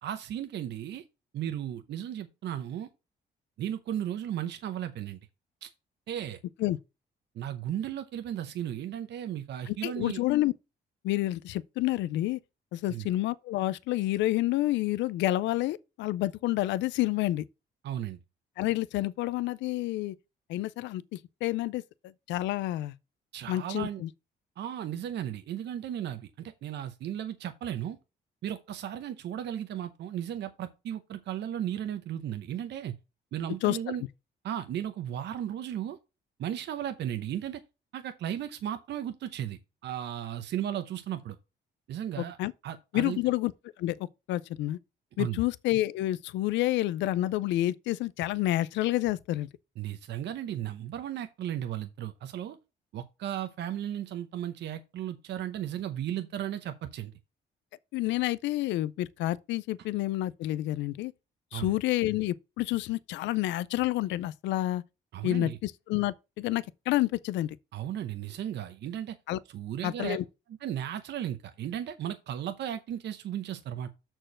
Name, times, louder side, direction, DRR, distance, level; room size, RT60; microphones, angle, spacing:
voice 1, 0.0-1.0 1.3-2.9 3.6-5.2 5.6-5.7 6.1-6.4 7.3-10.2 12.9-13.1 17.8-18.2 23.3-24.0 24.6-28.0 28.4-32.9 33.3-34.0 34.4-36.0 36.4-37.6 37.9-41.4 41.9-42.4 42.6-43.2 45.2-45.4 49.8-52.6 52.9-57.1 61.5-61.8 65.1-65.6 67.7-69.2 69.5-70.2 70.6-73.9, right 10 dB, 70° right, 0.8 m, -35 dB
voice 2, 9.7-10.5 11.0-12.4 12.7-17.4 18.6-20.1 20.5-21.8 22.3-22.9 23.5-24.1 33.6-33.8 42.2-42.5 42.9-43.5 43.8-44.0 44.3-44.8 45.2-49.5 57.9-61.1 61.5-64.8 65.2-67.6 69.3-69.4 69.8-70.2, left 16 dB, 85° left, 0.4 m, -29 dB
6.4 x 4.5 x 6.2 m
cardioid pair, 75°, 18 cm